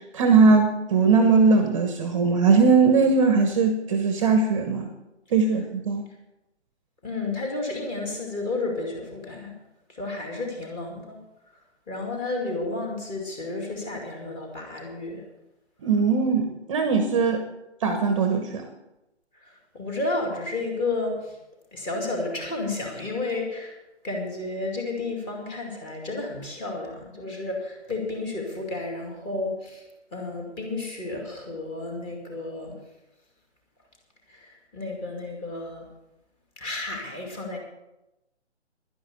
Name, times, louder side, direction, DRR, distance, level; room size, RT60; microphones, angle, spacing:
voice 1, 0.1-4.9 5.3-6.0 15.8-17.4 17.8-18.7, right 4 dB, 25° right, 6 dB, 1.1 m, -20 dB
voice 2, 7.0-9.5 9.9-11.2 11.9-15.3 19.4-21.4 21.7-23.8 24.0-29.8 30.1-32.8 34.3-35.9 36.6-37.6, left 2 dB, 15° left, 1 dB, 2.3 m, -32 dB
11.0 x 10.5 x 6.7 m, 0.93 s
figure-of-eight pair, 150°, 35 cm